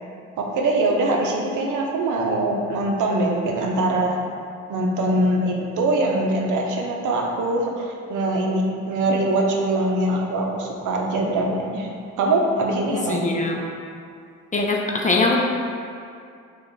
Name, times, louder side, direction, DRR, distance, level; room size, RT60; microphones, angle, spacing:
voice 1, 0.4-4.2 4.7-11.9 12.2-13.3, right 2 dB, 80° right, 0 dB, 0.7 m, -22 dB
voice 2, 13.1-13.6 14.5-15.4, left 2 dB, 25° left, -1 dB, 0.6 m, -21 dB
6.3 x 2.4 x 3.1 m, 2.3 s
cardioid pair, 90°, 30 cm